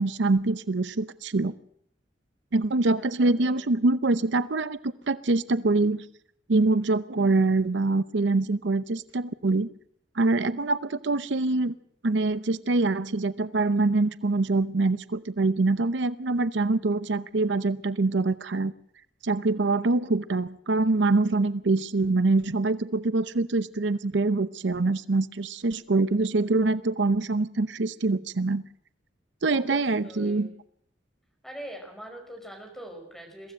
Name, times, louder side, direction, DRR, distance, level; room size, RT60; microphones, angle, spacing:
voice 1, 0.0-1.5 2.5-6.0 6.5-9.7 10.2-11.7 12.0-18.7 19.2-28.6 29.4-30.5, right 3 dB, 85° right, 14 dB, 0.7 m, -24 dB
voice 2, 3.0-3.7 29.5-30.5 31.4-33.5, right 1 dB, ahead, 2 dB, 5.3 m, -43 dB
22.5 x 15.5 x 7.8 m, 0.68 s
head